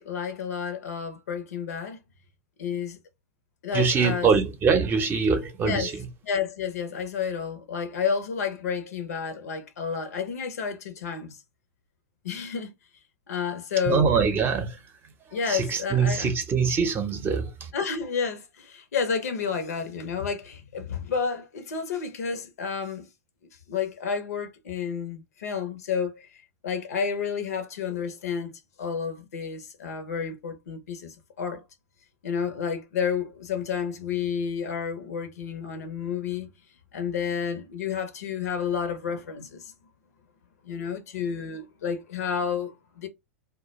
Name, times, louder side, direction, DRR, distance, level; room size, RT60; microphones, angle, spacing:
voice 1, 0.0-2.0 2.6-3.0 3.6-4.3 5.6-5.9 6.2-11.4 12.2-12.7 13.3-14.1 15.3-16.3 17.7-23.1 23.7-26.3 26.6-28.5 28.8-31.6 32.2-36.5 36.9-39.7 40.6-43.1, left 6 dB, 75° left, 0.7 m, -30 dB
voice 2, 3.7-6.1 13.9-15.1 15.5-17.7, right 5 dB, 25° right, 0.6 m, -24 dB
2.2 x 2.2 x 3.0 m
hypercardioid pair, 105°, 8 cm